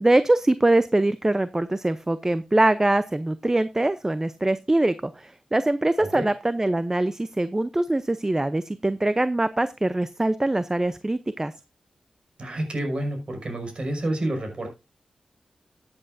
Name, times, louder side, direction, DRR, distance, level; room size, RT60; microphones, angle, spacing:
voice 1, 0.0-11.5, right 2 dB, 25° right, 0.7 m, -23 dB
voice 2, 12.4-14.7, right 1 dB, 55° right, 5.4 m, -29 dB
14.0 x 8.8 x 2.6 m
cardioid pair, 40°, 2 cm